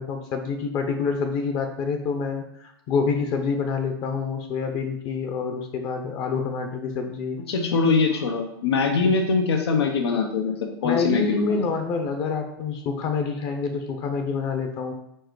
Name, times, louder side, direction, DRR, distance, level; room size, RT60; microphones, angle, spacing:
voice 1, 0.0-7.4 8.1-8.3 9.0-9.1 10.8-14.9, left 5 dB, 30° left, 5 dB, 0.7 m, -27 dB
voice 2, 7.5-10.5 10.8-11.6, left 4 dB, 90° left, 3 dB, 0.9 m, -22 dB
4.6 x 4.5 x 4.6 m, 0.79 s
supercardioid pair, 155°, 13 cm